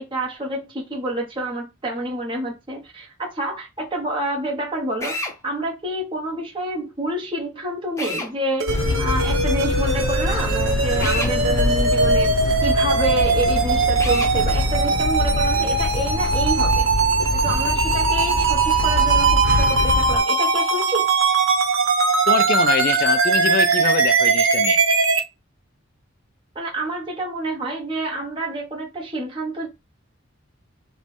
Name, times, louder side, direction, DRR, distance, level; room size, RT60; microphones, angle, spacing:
voice 1, 0.0-12.4 12.6-16.9 17.3-21.1 26.5-29.7, right 1 dB, 25° right, 1.0 m, -28 dB
Drill, 5.0-5.4 8.0-8.3 11.0-11.3 14.0-14.3, left 2 dB, 15° left, 0.7 m, -28 dB
sound 1, 8.6-25.2, right 4 dB, 65° right, 0.8 m, -20 dB
sound 2, 8.7-20.2, left 3 dB, 85° left, 0.6 m, -24 dB
voice 2, 22.3-24.8, left 7 dB, 45° left, 0.3 m, -24 dB
5.0 x 2.2 x 3.4 m
head